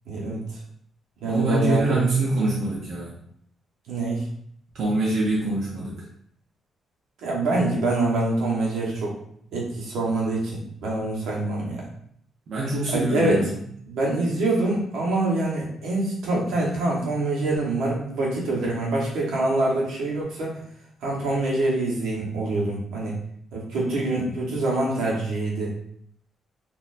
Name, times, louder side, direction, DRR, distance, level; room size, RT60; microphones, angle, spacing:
voice 1, 0.1-0.4 1.2-2.0 3.9-4.2 7.2-9.1 9.5-11.9 12.9-13.5 13.9-20.6 21.0-23.1 23.5-25.7, right 2 dB, 85° right, -3 dB, 1.2 m, -25 dB
voice 2, 1.3-3.1 4.7-6.0 12.5-13.5, right 2 dB, 60° right, -5 dB, 0.8 m, -24 dB
4.1 x 2.7 x 2.6 m, 0.66 s
cardioid pair, 150°, 0 cm